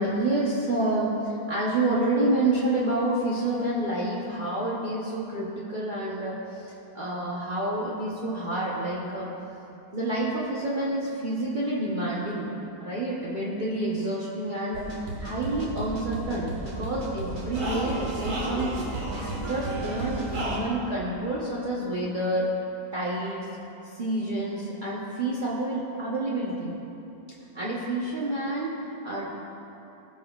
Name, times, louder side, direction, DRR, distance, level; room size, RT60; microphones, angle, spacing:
voice 1, 0.0-6.6 6.9-9.3 9.9-12.5 12.8-14.8 15.2-18.7 19.1-22.5 22.9-23.5 23.8-26.7 27.5-29.3, right 1 dB, 40° right, -6 dB, 0.8 m, -28 dB
sound 1, 14.7-20.6, right 2 dB, 55° right, 1.5 m, -32 dB
17.5 x 5.9 x 2.3 m, 2.9 s
omnidirectional pair, 1.7 m